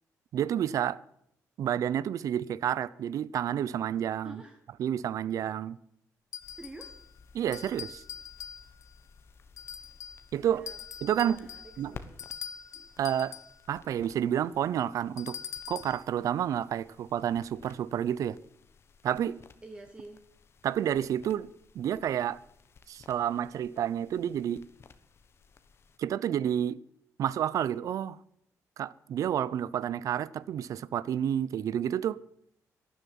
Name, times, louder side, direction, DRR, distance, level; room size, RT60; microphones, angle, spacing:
voice 1, 0.3-1.0 1.6-4.4 4.8-5.8 7.3-8.0 10.3-10.6 11.0-11.4 11.8-11.9 13.0-13.4 13.7-15.4 15.7-18.4 19.0-19.4 20.6-21.5 21.7-22.4 22.9-24.6 26.0-26.8 27.2-28.2 28.8-32.2, right 10 dB, 65° right, 0.7 m, -30 dB
voice 2, 4.2-4.7 6.6-7.0 10.4-12.2 19.6-20.2, right 2 dB, 15° right, 1.5 m, -49 dB
sound 1, 6.3-7.1 7.5-8.9 9.6-10.3 10.7-13.6 15.2-16.0, left 8 dB, 65° left, 0.8 m, -43 dB
sound 2, 6.4-26.0, left 5 dB, 45° left, 1.2 m, -56 dB
12.5 x 11.0 x 9.3 m
cardioid pair, 130°, 6 cm